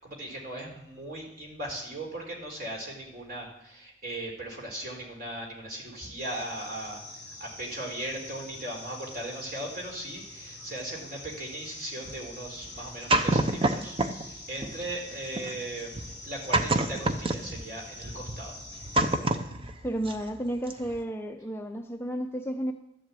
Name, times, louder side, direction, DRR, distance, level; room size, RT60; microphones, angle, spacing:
voice 1, 0.0-14.0 14.5-15.9 16.2-18.6, right 1 dB, 50° right, -1 dB, 4.1 m, -38 dB
sound 1, 6.2-19.2, left 2 dB, 15° right, 3.9 m, -45 dB
sound 2, 12.0-14.3 14.6-20.4 20.7-21.0, right 2 dB, 30° right, 0.8 m, -28 dB
voice 2, 19.8-22.7, right 1 dB, 15° left, 4 dB, 0.7 m, -32 dB
12.5 x 7.8 x 8.3 m, 0.83 s
head